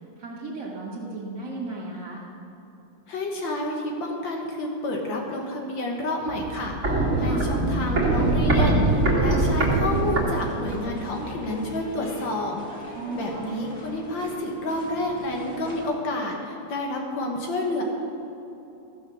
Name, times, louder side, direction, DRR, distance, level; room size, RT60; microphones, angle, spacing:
voice 1, 0.2-2.2 7.3-7.5 12.9-13.4, right 2 dB, 60° right, -4 dB, 2.5 m, -35 dB
voice 2, 3.1-12.6 12.8-17.8, left 1 dB, 70° left, 1 dB, 1.9 m, -29 dB
Walk footsteps, 6.3-11.0 11.2-11.3, right 2 dB, 35° right, 2.4 m, -23 dB
sound 1, 7.0-15.8, equal, 45° left, 2.8 m, -40 dB
14.5 x 7.1 x 6.3 m, 3.0 s
omnidirectional pair, 2.2 m